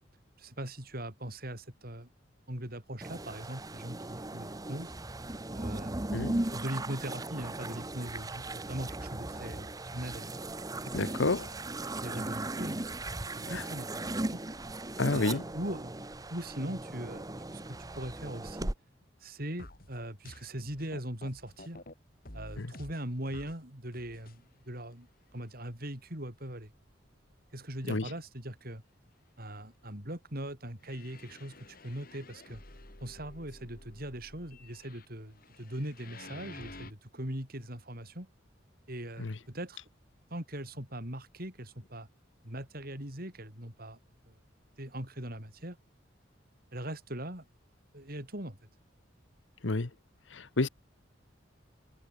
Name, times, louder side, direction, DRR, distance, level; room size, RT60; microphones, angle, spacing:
voice 1, 0.4-2.1 2.5-4.9 5.5-10.3 10.9-11.2 12.0-12.9 13.2-14.4 15.1-15.9 16.3-18.7 19.2-21.8 22.3-25.1 25.3-26.7 27.5-28.8 29.4-32.6 33.0-38.3 38.9-39.8 40.3-42.1 42.4-44.0 44.3-44.4 44.8-45.8 46.7-47.4 47.9-48.6, right 1 dB, 55° right, 7.6 m, -40 dB
sound 1, 3.0-18.7, right 2 dB, 20° right, 1.0 m, -37 dB
voice 2, 10.9-11.5 13.5-13.6 15.0-15.4 22.6-22.7 27.9-28.0 39.2-39.3 49.6-49.9 50.3-50.7, left 3 dB, 90° left, 1.2 m, -29 dB
sound 2, 19.6-21.9 22.3-23.6 23.9-24.4 24.9-25.0 25.7-25.8 26.3-26.4 30.8-36.9, left 2 dB, 50° left, 4.7 m, -50 dB
head